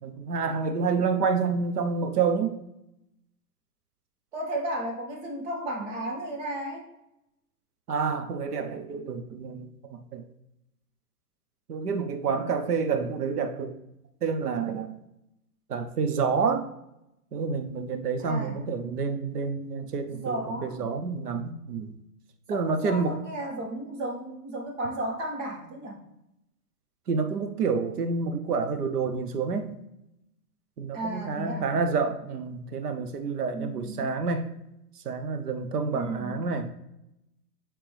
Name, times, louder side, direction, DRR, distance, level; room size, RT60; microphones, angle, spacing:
voice 1, 0.0-2.6 7.9-10.2 11.7-13.7 14.2-15.0 15.7-16.7 17.3-22.0 22.5-23.2 27.1-29.8 30.8-34.4 35.0-36.7, right 5 dB, 90° right, 7 dB, 1.0 m, -28 dB
voice 2, 4.3-6.9 18.2-18.6 20.1-20.9 22.5-26.0 30.9-31.7 33.5-34.1 35.9-36.4, right 1 dB, 50° right, -1 dB, 2.0 m, -34 dB
9.0 x 3.4 x 3.4 m, 0.85 s
hypercardioid pair, 145°, 45 cm